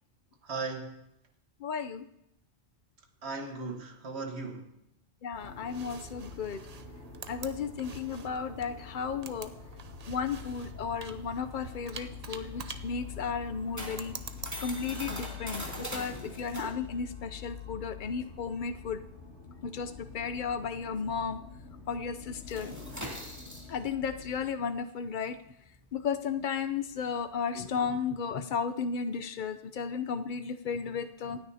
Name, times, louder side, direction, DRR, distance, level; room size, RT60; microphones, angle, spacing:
voice 1, 0.4-1.0 3.2-4.7, right 3 dB, 65° right, 1.6 m, -37 dB
voice 2, 1.6-2.0 5.2-6.6 7.3-9.5 10.1-14.1 14.6-19.0 19.6-21.4 21.9-22.7 23.7-25.4 25.9-31.4, left 6 dB, 50° left, 0.7 m, -34 dB
sound 1, 5.3-15.3, right 6 dB, 45° right, 0.6 m, -47 dB
sound 2, 5.4-24.5, left 6 dB, 90° left, 2.7 m, -46 dB
sound 3, 12.9-21.2 21.5-21.7 22.0-27.8, equal, 15° right, 2.7 m, -43 dB
26.0 x 9.4 x 2.8 m
omnidirectional pair, 1.2 m